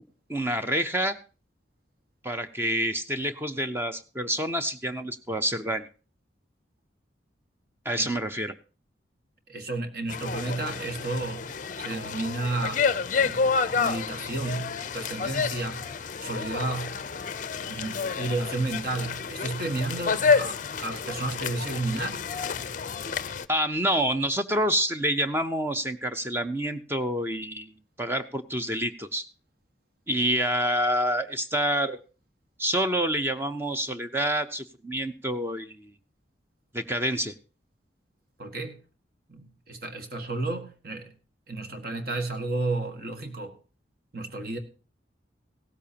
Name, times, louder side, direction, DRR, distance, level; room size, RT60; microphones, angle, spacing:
voice 1, 0.3-1.2 2.2-5.9 7.9-8.5 23.5-27.7 28.0-29.2 30.1-32.0 32.6-35.9 36.7-37.3, right 1 dB, 10° right, 0.6 m, -27 dB
voice 2, 9.5-11.5 11.8-12.9 13.1-15.9 16.2-17.0 17.6-22.2 38.4-38.8 39.3-41.1 41.5-43.5 44.1-44.6, right 2 dB, 50° right, 1.6 m, -32 dB
sound 1, 10.1-23.5, left 5 dB, 40° left, 0.5 m, -29 dB
16.0 x 13.5 x 2.8 m
head